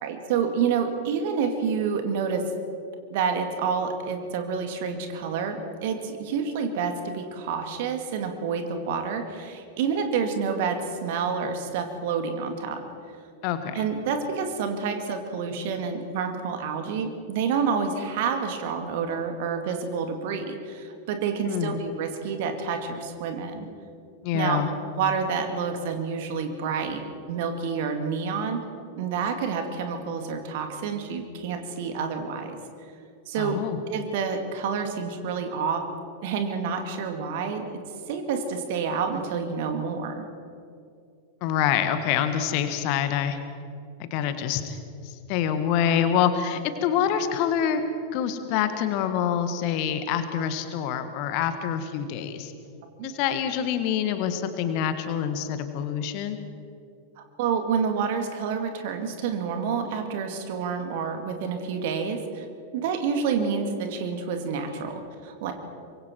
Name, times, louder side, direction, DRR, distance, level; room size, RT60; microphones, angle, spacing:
voice 1, 0.0-2.5 3.1-12.8 13.7-23.7 24.3-24.6 24.9-27.0 27.3-28.6 29.0-32.6 33.3-33.6 33.9-35.8 36.2-37.8 38.1-40.3 53.0-53.1 57.4-62.5 62.7-65.5, right 6 dB, 50° right, 6 dB, 2.4 m, -28 dB
voice 2, 13.4-13.8 21.4-21.8 24.2-24.7 33.4-33.8 41.4-43.4 44.0-44.8 45.0-47.8 48.1-52.5 53.0-56.4, left 9 dB, 45° left, 9 dB, 1.7 m, -26 dB
24.5 x 23.0 x 4.6 m, 2.4 s
figure-of-eight pair, 90°, 0 cm